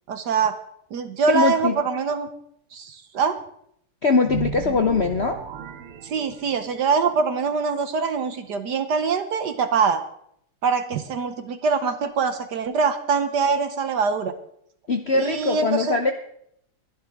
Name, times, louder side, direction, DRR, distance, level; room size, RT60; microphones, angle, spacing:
voice 1, 0.1-0.6 0.9-2.3 2.7-3.4 6.0-10.0 10.6-14.3 15.1-16.0, right 5 dB, 60° right, 10 dB, 1.3 m, -23 dB
voice 2, 1.3-1.7 4.0-5.4 14.9-16.1, left 4 dB, 70° left, 6 dB, 0.6 m, -21 dB
sound 1, 4.2-6.8, right 7 dB, 90° right, 1.8 m, -34 dB
21.5 x 11.5 x 3.6 m, 0.70 s
omnidirectional pair, 2.4 m